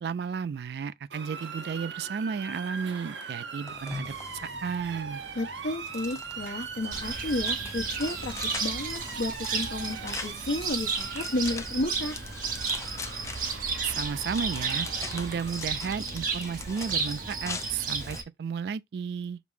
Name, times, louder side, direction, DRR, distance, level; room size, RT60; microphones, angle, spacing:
voice 1, 0.0-5.2 13.8-14.9 15.1-19.4, right 6 dB, 65° right, 0.3 m, -33 dB
Motor vehicle (road) / Siren, 1.1-15.6, right 6 dB, 90° right, 0.7 m, -40 dB
sound 1, 3.7-18.2, left 4 dB, 15° left, 0.4 m, -43 dB
voice 2, 5.3-12.2, left 2 dB, 80° left, 1.0 m, -32 dB
Cricket, 6.9-18.2, right 5 dB, 50° right, 0.9 m, -33 dB
5.1 x 2.1 x 4.8 m
head